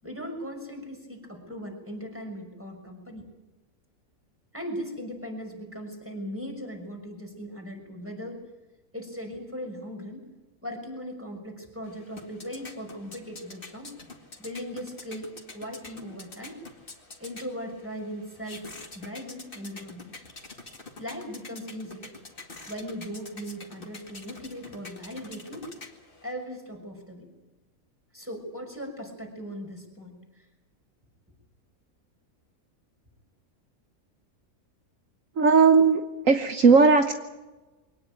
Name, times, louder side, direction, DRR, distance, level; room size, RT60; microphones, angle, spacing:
voice 1, 0.0-3.3 4.5-8.4 8.9-10.2 10.6-14.0 14.4-16.6 17.2-20.1 21.0-22.1 22.7-25.7 26.2-27.3 28.1-30.5, equal, 10° right, 2 dB, 6.2 m, -38 dB
sound 1, 11.8-26.3, left 3 dB, 40° left, 2.4 m, -46 dB
voice 2, 35.4-37.1, right 4 dB, 65° right, 6 dB, 1.5 m, -18 dB
23.5 x 18.5 x 9.1 m, 1.1 s
omnidirectional pair, 1.5 m